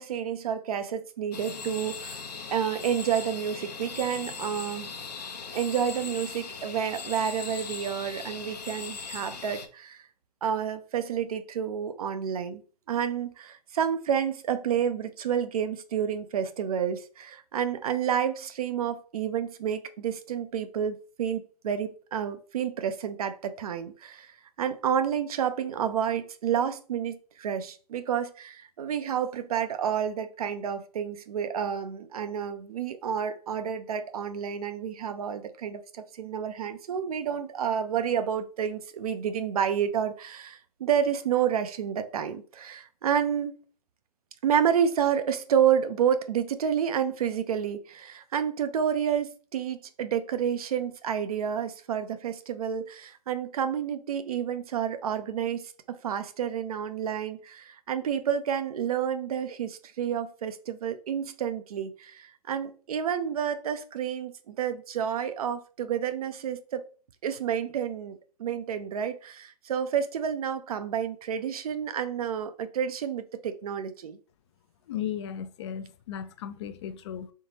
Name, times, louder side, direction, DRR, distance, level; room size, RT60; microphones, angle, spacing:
voice 1, 0.0-2.2 2.5-4.9 5.5-10.1 10.4-12.6 12.9-43.5 44.4-66.8 67.2-74.2, right 8 dB, 65° right, 0.6 m, -29 dB
sound 1, 1.3-9.7, left 5 dB, 80° left, 0.9 m, -39 dB
voice 2, 74.9-77.3, left 9 dB, 45° left, 0.5 m, -36 dB
3.8 x 3.6 x 2.8 m
hypercardioid pair, 130°, 21 cm